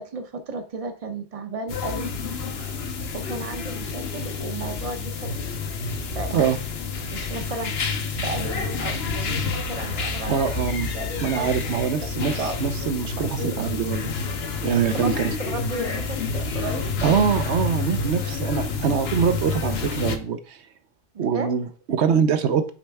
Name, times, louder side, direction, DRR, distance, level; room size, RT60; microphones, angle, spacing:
voice 1, 0.0-2.1 3.1-5.3 6.1-6.5 7.1-11.8 12.1-12.6 13.4-13.8 14.8-15.1 15.4-16.9 21.1-21.5, right 3 dB, 35° right, 7 dB, 0.8 m, -34 dB
sound 1, 1.7-20.2, left 4 dB, 60° left, 1.0 m, -29 dB
voice 2, 10.3-10.9 11.2-14.1 14.6-15.1 17.0-20.6 21.2-22.7, right 7 dB, 65° right, 9 dB, 1.0 m, -24 dB
8.7 x 4.3 x 3.5 m, 0.39 s
omnidirectional pair, 1.3 m